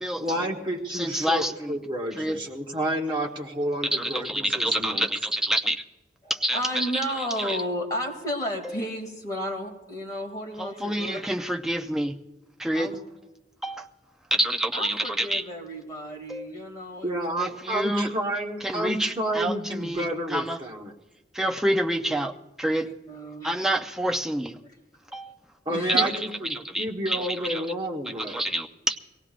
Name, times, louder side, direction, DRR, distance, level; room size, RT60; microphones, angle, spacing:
voice 1, 0.2-5.1 17.0-20.9 25.6-28.4, right 1 dB, 25° right, 1.3 m, -30 dB
voice 2, 0.9-1.7 2.2-2.4 3.9-5.8 6.3-6.9 7.2-7.6 8.6-8.8 10.6-12.2 12.6-13.0 13.6-13.9 14.3-15.4 16.3-16.5 17.4-18.1 18.6-20.6 21.3-23.0 23.4-24.6 25.1-25.4 26.0-26.1 26.5-27.7 28.2-29.0, right 1 dB, 5° right, 0.5 m, -28 dB
voice 3, 6.5-11.2 12.7-13.0 14.7-17.1 22.8-23.7 25.7-26.1, equal, 20° left, 2.4 m, -33 dB
23.0 x 17.5 x 2.5 m
head